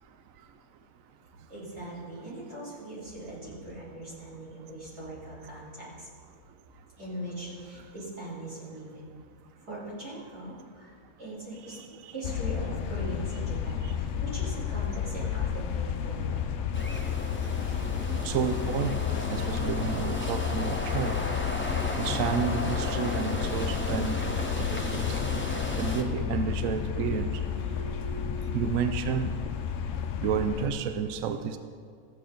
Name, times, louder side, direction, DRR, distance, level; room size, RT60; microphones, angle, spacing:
voice 1, 1.5-6.1 7.0-9.0 9.7-10.9 11.2-11.8 12.1-16.4, right 1 dB, 90° right, -8 dB, 4.0 m, -40 dB
sound 1, 12.2-30.7, left 8 dB, 65° left, 0.7 m, -31 dB
sound 2, 16.7-26.0, left 1 dB, 10° left, 0.7 m, -35 dB
voice 2, 18.2-19.0 19.3-21.2 22.0-24.1 24.6-25.2 25.8-29.4 30.2-31.6, right 7 dB, 70° right, 8 dB, 0.9 m, -31 dB
14.5 x 8.6 x 3.8 m, 2.2 s
omnidirectional pair, 1.6 m